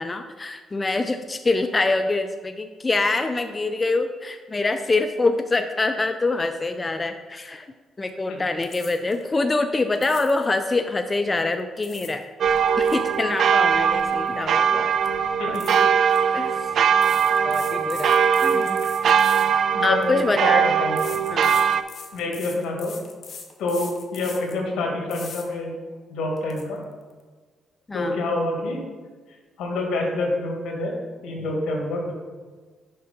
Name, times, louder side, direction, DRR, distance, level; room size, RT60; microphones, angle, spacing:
voice 1, 0.0-7.7 8.0-12.2 12.8-14.9 15.5-15.6 16.3-16.7 17.4-18.6 19.8-20.8 21.3-21.6 27.9-28.2, left 3 dB, 25° left, 7 dB, 0.4 m, -25 dB
sound 1, 8.6-9.2 10.0-10.5 11.5-12.2 12.6-14.4 14.7-14.9 15.5-16.2 17.0-20.1 21.0-24.6 25.1-25.5 25.9-26.0 26.4-26.6, left 5 dB, 50° left, 1.0 m, -42 dB
sound 2, 12.4-21.8, right 7 dB, 60° right, 0.4 m, -21 dB
voice 2, 15.4-15.7 18.5-18.7 19.7-20.2 20.6-21.0 22.1-23.0 23.6-25.7 26.1-26.8 27.9-28.8 29.6-30.9 31.2-32.1, left 2 dB, 80° left, 0 dB, 1.9 m, -27 dB
6.6 x 5.6 x 5.3 m, 1.4 s
cardioid pair, 90°, 0 cm